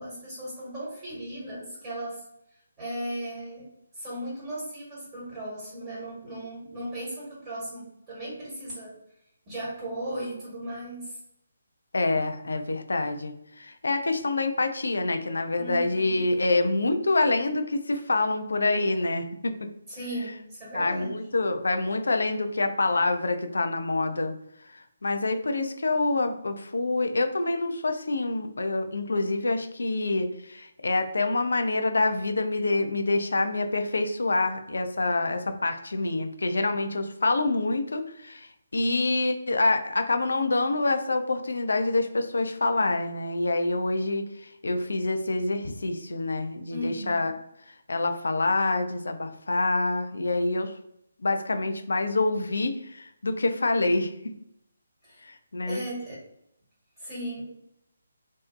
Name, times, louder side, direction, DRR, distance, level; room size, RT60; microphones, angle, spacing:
voice 1, 0.0-2.2 2.8-3.7 3.9-9.0 9.5-11.2 15.6-16.2 17.9-18.0 19.9-21.1 46.7-47.3 55.0-55.2 55.7-56.2 57.0-57.4, right 1 dB, 25° right, -8 dB, 1.1 m, -36 dB
voice 2, 11.9-19.5 20.7-24.3 24.7-38.5 38.7-44.3 44.6-47.4 47.9-50.7 51.2-54.1 55.2-55.8, left 2 dB, 65° left, 7 dB, 0.3 m, -26 dB
2.6 x 2.0 x 2.3 m, 0.77 s
figure-of-eight pair, 145°, 0 cm